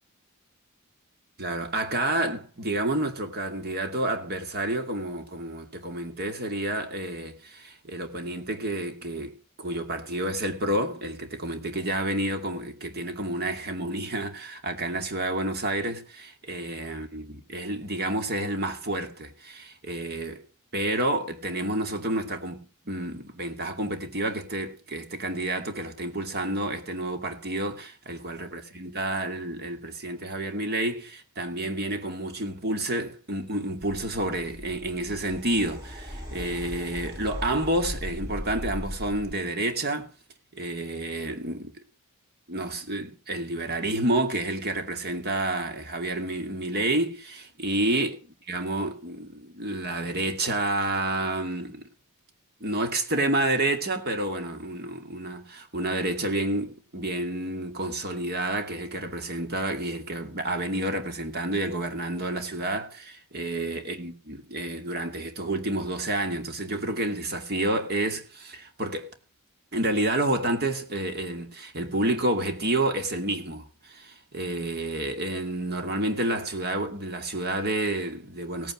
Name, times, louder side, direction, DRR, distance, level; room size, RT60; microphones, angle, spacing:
voice 1, 1.4-20.4 20.7-40.1 40.5-41.7 42.5-48.2 48.5-51.9 52.6-69.1 69.7-78.7, right 1 dB, 45° right, 2.5 m, -29 dB
sound 1, 34.1-39.4, equal, 15° right, 3.4 m, -38 dB
17.0 x 9.3 x 6.5 m
head